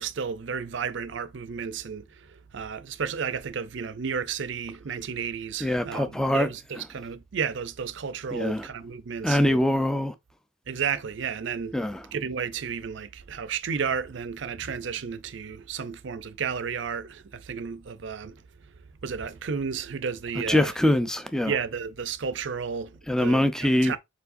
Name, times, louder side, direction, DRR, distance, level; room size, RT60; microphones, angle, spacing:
voice 1, 0.0-9.6 10.7-11.8 12.1-18.7 19.0-20.7 21.5-24.0, right 6 dB, 60° right, 0.5 m, -32 dB
voice 2, 5.6-6.5 8.3-8.7 9.2-10.1 11.7-12.0 20.5-21.5 23.1-24.0, left 1 dB, 5° left, 0.4 m, -23 dB
4.7 x 4.4 x 2.5 m
head